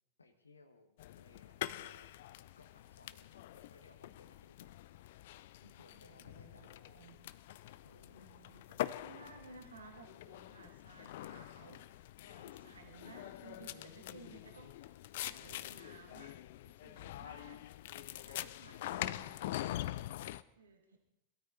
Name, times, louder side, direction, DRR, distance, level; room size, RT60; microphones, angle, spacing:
voice 1, 0.2-2.1 2.5-4.7 5.6-6.7 7.8-8.4 18.6-18.9, left 3 dB, 75° left, 8 dB, 1.6 m, -63 dB
sound 1, 1.0-20.4, left 14 dB, 55° left, 0.5 m, -45 dB
voice 2, 5.9-7.2 8.0-11.9 12.2-16.3 16.6-17.8 18.2-19.4 20.6-20.8, right 4 dB, 75° right, 3 dB, 2.3 m, -57 dB
22.5 x 13.0 x 4.1 m, 0.83 s
figure-of-eight pair, 90°, 0 cm